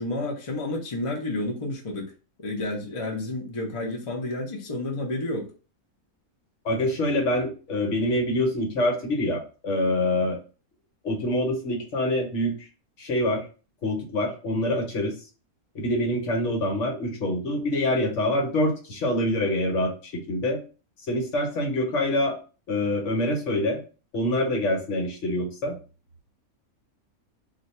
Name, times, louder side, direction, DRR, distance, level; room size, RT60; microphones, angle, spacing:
voice 1, 0.0-2.1 2.4-5.5, left 2 dB, 35° left, -1 dB, 0.5 m, -30 dB
voice 2, 6.6-10.4 11.0-12.7 13.0-13.4 13.8-15.1 15.7-20.6 21.1-22.4 22.7-23.8 24.1-25.7, left 1 dB, 60° left, 1 dB, 1.2 m, -25 dB
2.6 x 2.3 x 4.1 m, 0.35 s
omnidirectional pair, 1.5 m